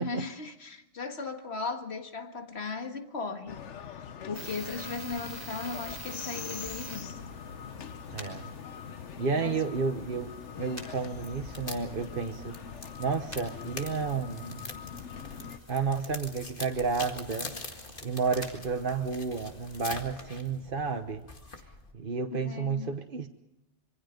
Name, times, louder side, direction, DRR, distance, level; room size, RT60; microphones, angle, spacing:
voice 1, 0.0-7.2 9.2-9.7 22.4-23.0, left 4 dB, 65° left, 2.1 m, -37 dB
sound 1, 3.5-15.6, left 7 dB, 90° left, 1.3 m, -43 dB
sound 2, 4.3-20.0, equal, 15° left, 5.3 m, -49 dB
voice 2, 8.1-8.5 9.2-12.6 13.0-14.7 15.7-17.5 18.0-21.3 21.9-23.3, right 5 dB, 50° right, 1.3 m, -31 dB
sound 3, 11.1-21.9, left 3 dB, 50° left, 2.3 m, -44 dB
26.5 x 23.5 x 5.2 m
omnidirectional pair, 1.2 m